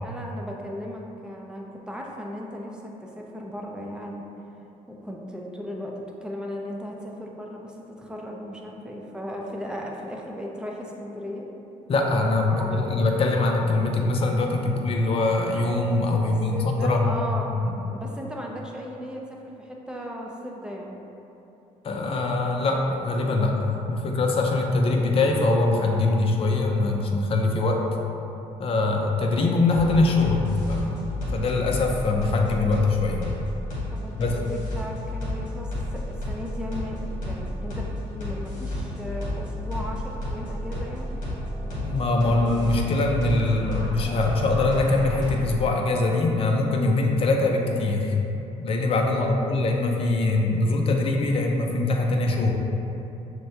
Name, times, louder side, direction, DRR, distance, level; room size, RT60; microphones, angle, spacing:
voice 1, 0.0-4.2 4.9-11.5 12.5-12.9 16.2-17.5 17.9-21.0 33.9-41.1 49.1-49.5, equal, 5° right, -1 dB, 0.5 m, -36 dB
voice 2, 11.9-17.1 17.5-17.7 21.8-27.8 28.6-33.2 34.2-34.4 41.8-48.1 48.6-52.5, left 2 dB, 45° left, 1 dB, 0.5 m, -23 dB
sound 1, 29.7-45.7, left 1 dB, 70° left, 1.2 m, -32 dB
6.0 x 2.1 x 2.7 m, 2.9 s
cardioid pair, 90°, 14 cm